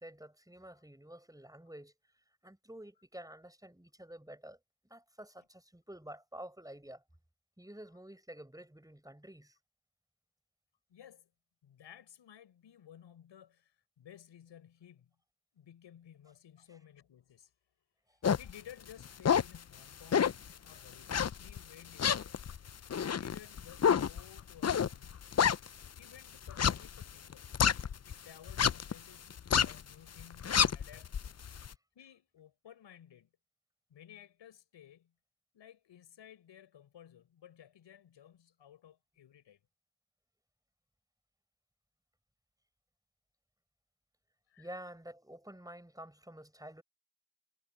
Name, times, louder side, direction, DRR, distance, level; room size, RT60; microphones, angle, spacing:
voice 1, 0.0-1.9 2.4-4.6 4.9-7.0 7.6-9.6 31.7-31.8 44.6-46.8, right 1 dB, 10° right, 7.9 m, -49 dB
voice 2, 10.9-11.3 11.6-15.1 15.5-17.5 18.4-22.4 23.0-25.3 26.0-27.5 28.1-31.1 32.0-33.3 33.9-35.1 35.5-39.6 44.5-44.7, left 10 dB, 80° left, 5.2 m, -56 dB
sound 1, 18.2-18.5 19.0-19.6 20.1-20.5 21.1-21.6 22.0-26.0 26.5-28.1 28.5-28.9 29.3-29.8 30.2-31.7, left 7 dB, 35° left, 0.7 m, -28 dB
supercardioid pair, 45°, 43 cm